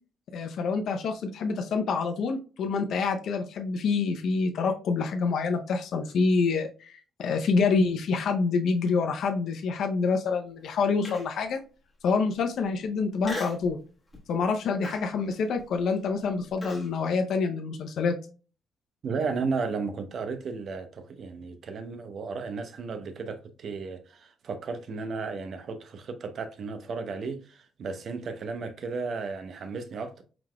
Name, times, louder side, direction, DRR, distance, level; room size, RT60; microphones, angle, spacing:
voice 1, 0.3-6.9 7.2-11.6 12.0-13.8 14.3-18.2, left 4 dB, 70° left, 0.6 m, -27 dB
Human voice, 11.0-11.5 12.0-12.1 13.2-13.7 14.1-14.4 14.8-16.9, left 1 dB, 10° left, 1.5 m, -39 dB
voice 2, 19.0-30.2, right 4 dB, 55° right, 0.7 m, -34 dB
4.8 x 3.8 x 2.2 m
cardioid pair, 90°, 0 cm